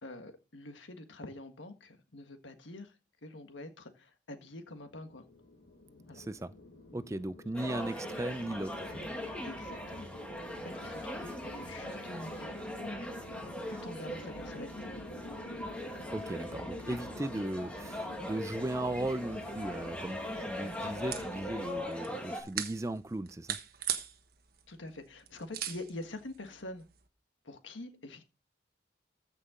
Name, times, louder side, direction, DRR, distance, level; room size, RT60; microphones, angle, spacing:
voice 1, 0.0-3.0 3.2-5.2 6.1-6.3 9.4-10.1 10.6-12.6 13.7-14.9 24.7-26.8 27.4-28.3, left 2 dB, 85° left, 1.6 m, -46 dB
sound 1, 4.9-21.8, left 2 dB, 55° left, 1.7 m, -48 dB
voice 2, 6.1-6.5 6.9-9.1 16.1-23.6, right 1 dB, 15° right, 0.4 m, -37 dB
sound 2, 7.5-22.4, left 1 dB, 5° left, 1.9 m, -41 dB
sound 3, 19.8-27.1, right 10 dB, 50° right, 1.2 m, -42 dB
14.5 x 5.7 x 3.7 m
head